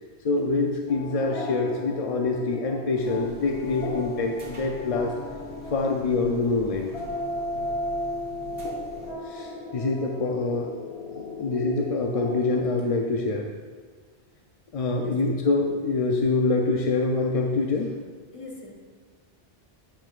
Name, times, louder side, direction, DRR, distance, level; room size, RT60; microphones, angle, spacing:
voice 1, 0.2-5.1 5.7-6.9 9.3-10.7 11.1-13.5 14.7-17.9, left 3 dB, 50° left, 1 dB, 0.4 m, -25 dB
sound 1, 0.9-12.6, left 2 dB, 70° left, 1.1 m, -36 dB
sound 2, 2.9-9.1, right 1 dB, 60° right, 1.3 m, -44 dB
voice 2, 14.9-15.2 18.3-18.7, left 2 dB, 30° left, -1 dB, 1.1 m, -43 dB
7.8 x 7.2 x 2.4 m, 1.6 s
omnidirectional pair, 1.1 m